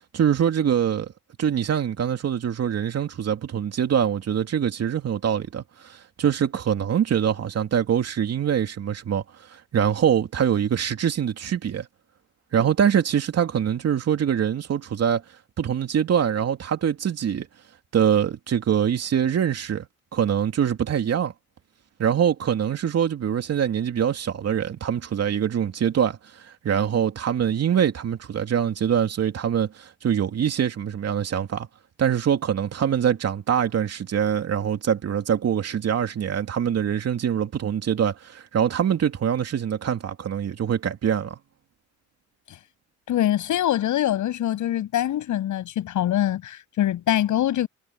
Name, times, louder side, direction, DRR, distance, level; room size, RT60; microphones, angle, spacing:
voice 1, 0.1-1.1 1.4-9.2 9.5-11.9 12.5-15.2 15.6-17.5 17.9-19.9 20.1-21.3 22.0-31.7 32.0-41.4, right 8 dB, 55° right, 2.9 m, -24 dB
voice 2, 43.1-47.7, left 12 dB, 75° left, 7.7 m, -24 dB
cardioid pair, 90°, 30 cm